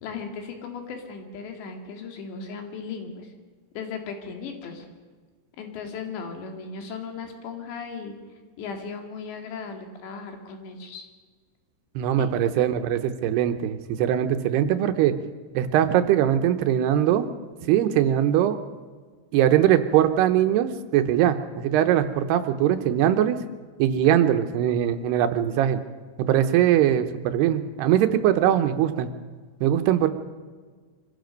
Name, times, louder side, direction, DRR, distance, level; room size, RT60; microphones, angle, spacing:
voice 1, 0.0-3.3 3.7-4.9 5.6-8.2 8.6-11.1 12.2-12.3, left 5 dB, 90° left, 4 dB, 4.4 m, -36 dB
voice 2, 12.0-15.2 15.5-17.3 17.7-18.6 19.3-23.4 23.8-25.8 26.2-29.1 29.6-30.1, right 11 dB, 80° right, 8 dB, 3.0 m, -21 dB
25.0 x 16.0 x 6.6 m, 1.5 s
omnidirectional pair, 4.9 m